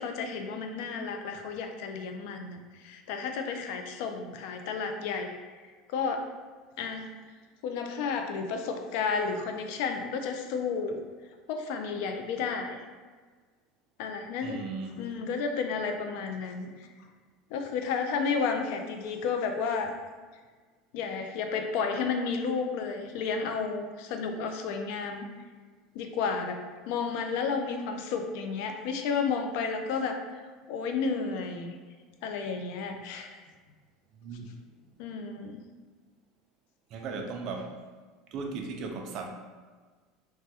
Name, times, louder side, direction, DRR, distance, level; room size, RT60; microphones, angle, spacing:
voice 1, 0.0-5.7 5.9-6.2 6.8-7.1 7.6-11.0 11.5-12.8 14.0-14.6 15.0-16.7 17.5-19.9 20.9-25.3 25.9-30.4 30.7-31.8 32.2-33.4 35.0-35.6, left 5 dB, 70° left, 5 dB, 0.4 m, -32 dB
voice 2, 14.4-14.9 34.1-34.5 36.9-37.8 38.3-39.2, right 4 dB, 50° right, 2 dB, 0.4 m, -36 dB
3.3 x 2.1 x 2.7 m, 1.4 s
supercardioid pair, 145°, 0 cm